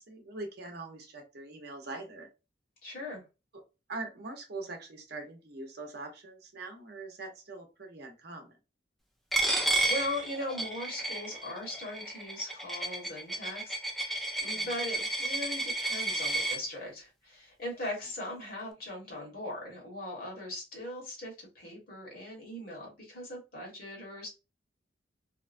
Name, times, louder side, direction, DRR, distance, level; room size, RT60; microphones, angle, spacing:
voice 1, 0.0-2.3 3.9-8.6 14.5-14.7, right 3 dB, 60° right, 3 dB, 0.7 m, -43 dB
voice 2, 2.8-3.2 9.4-14.1 14.4-24.3, left 1 dB, 55° left, -2 dB, 1.4 m, -39 dB
Coin (dropping), 9.3-16.6, right 2 dB, ahead, 0.4 m, -32 dB
2.9 x 2.2 x 2.5 m, 0.27 s
head